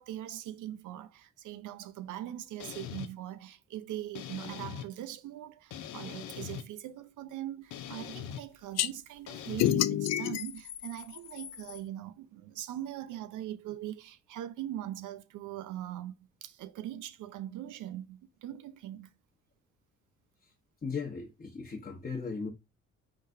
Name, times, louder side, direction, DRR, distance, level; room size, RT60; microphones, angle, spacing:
voice 1, 0.0-16.1 16.4-19.1, right 12 dB, 80° right, 0.6 m, -41 dB
sound 1, 2.6-3.1 4.1-4.9 5.7-6.6 7.7-8.4 9.3-9.7, left 9 dB, 85° left, 0.8 m, -41 dB
sound 2, 8.8-8.9 9.6-11.8, left 12 dB, 60° left, 0.4 m, -29 dB
voice 2, 20.8-22.5, left 5 dB, 30° left, 1.2 m, -37 dB
5.0 x 3.8 x 2.7 m
cardioid pair, 90°, 30 cm